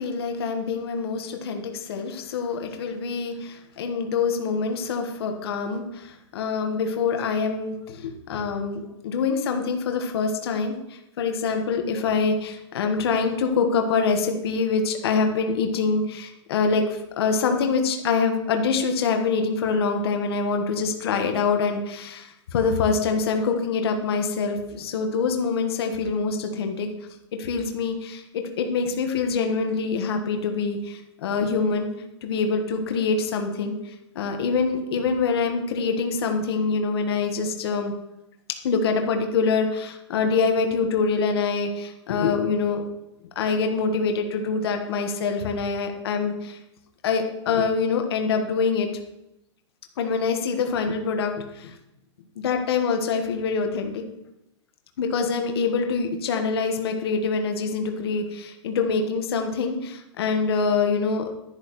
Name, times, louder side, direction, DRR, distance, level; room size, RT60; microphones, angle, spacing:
voice 1, 0.0-26.9 27.3-31.9 32.2-37.9 38.6-42.8 43.3-46.6 47.0-48.9 50.0-51.8 52.4-54.0 55.0-61.2, left 5 dB, 55° left, 4 dB, 1.4 m, -25 dB
11.0 x 10.5 x 3.1 m, 0.90 s
hypercardioid pair, 170°, 15 cm